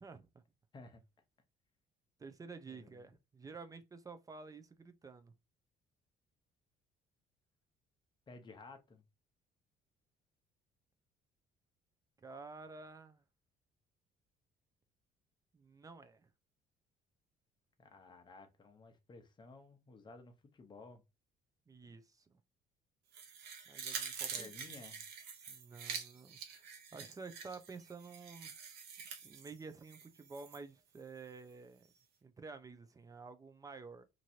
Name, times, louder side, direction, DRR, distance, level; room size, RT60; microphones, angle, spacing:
voice 1, 0.0-0.4 2.2-5.3 12.2-13.2 15.5-16.3 21.7-22.4 23.7-24.5 25.5-26.6 26.9-28.5 29.2-31.9 32.2-34.1, right 4 dB, 20° right, 0.5 m, -51 dB
voice 2, 2.7-3.2 8.3-9.0 17.8-21.0 24.3-25.0, left 3 dB, 25° left, 0.8 m, -55 dB
sound 1, 23.1-30.6 31.0-31.1, right 6 dB, 75° right, 0.9 m, -46 dB
3.0 x 2.6 x 2.7 m
cardioid pair, 110°, 17 cm